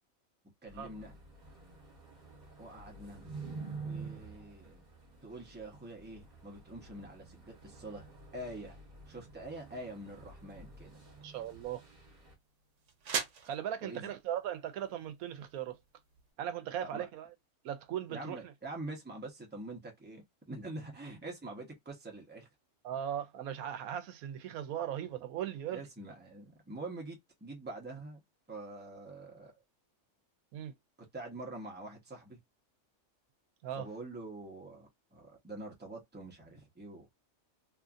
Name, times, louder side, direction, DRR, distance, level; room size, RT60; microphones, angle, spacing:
voice 1, 0.6-1.2 2.6-3.4 3.8-4.8 5.2-8.1 8.3-8.8 9.1-11.0 13.8-14.1 16.8-17.1 18.1-22.5 25.7-28.2 28.5-29.5 31.0-32.4 33.8-37.1, right 2 dB, 10° right, 0.8 m, -45 dB
sound 1, 0.7-12.3, right 4 dB, 35° right, 1.1 m, -49 dB
sound 2, 10.4-16.3, right 6 dB, 60° right, 1.0 m, -44 dB
voice 2, 11.2-11.8 13.4-15.8 16.4-17.3 17.6-18.4 22.8-25.8 30.5-30.7 33.6-33.9, right 10 dB, 90° right, 1.1 m, -38 dB
3.0 x 2.5 x 2.4 m
omnidirectional pair, 1.5 m